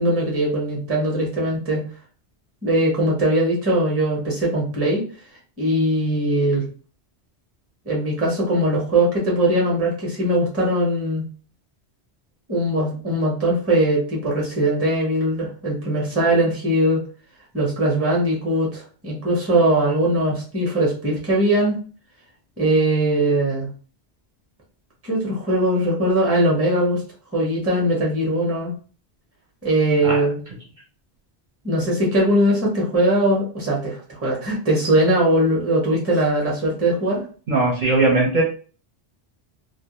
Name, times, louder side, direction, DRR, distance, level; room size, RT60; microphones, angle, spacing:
voice 1, 0.0-1.8 2.6-5.0 5.6-6.7 7.9-11.3 12.5-17.0 17.5-21.8 22.6-23.7 25.0-27.0 27.3-28.7 29.6-30.4 31.6-37.2, right 1 dB, 15° right, -3 dB, 0.7 m, -20 dB
voice 2, 37.5-38.4, right 2 dB, 50° right, -4 dB, 0.7 m, -18 dB
2.2 x 2.1 x 2.9 m, 0.40 s
omnidirectional pair, 1.1 m